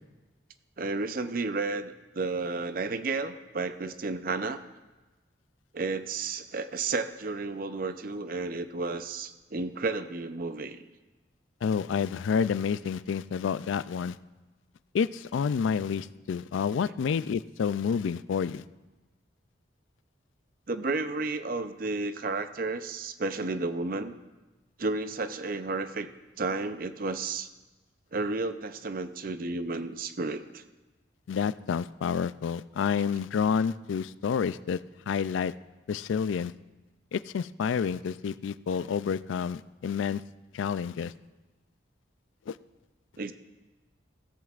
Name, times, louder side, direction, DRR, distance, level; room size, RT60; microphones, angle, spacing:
voice 1, 0.8-4.6 5.7-10.8 20.7-24.1 24.8-26.1 26.4-27.5 28.1-30.6 43.2-43.3, right 3 dB, 45° right, 10 dB, 0.5 m, -32 dB
voice 2, 11.6-14.2 14.9-18.6 31.3-34.8 35.1-35.5 35.9-36.5 37.1-40.2 40.5-41.1 42.5-42.6, left 6 dB, 80° left, 16 dB, 0.3 m, -29 dB
15.5 x 13.5 x 2.4 m, 1.2 s
head